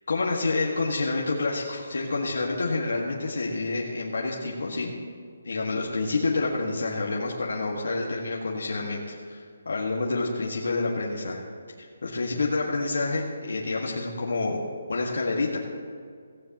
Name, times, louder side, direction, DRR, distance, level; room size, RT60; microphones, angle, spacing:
voice 1, 0.1-4.9 5.4-11.4 11.8-14.6 14.9-15.6, left 3 dB, 75° left, -3 dB, 1.8 m, -28 dB
17.0 x 15.5 x 3.0 m, 2.2 s
hypercardioid pair, 175°, 0 cm